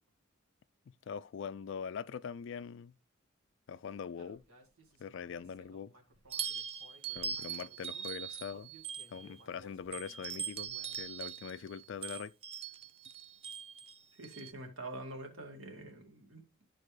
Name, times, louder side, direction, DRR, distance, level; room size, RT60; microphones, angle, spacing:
voice 1, 1.1-2.9 3.7-4.4 5.0-5.9 7.1-8.7 9.1-12.3, left 7 dB, 55° left, 0.3 m, -42 dB
Human voice, 4.2-8.1 8.5-11.2, equal, 85° right, 1.7 m, -60 dB
sound 1, 6.3-9.4 9.9-14.5, right 7 dB, 25° right, 0.3 m, -41 dB
voice 2, 14.2-16.6, right 1 dB, 70° right, 2.0 m, -46 dB
12.5 x 4.4 x 3.2 m
head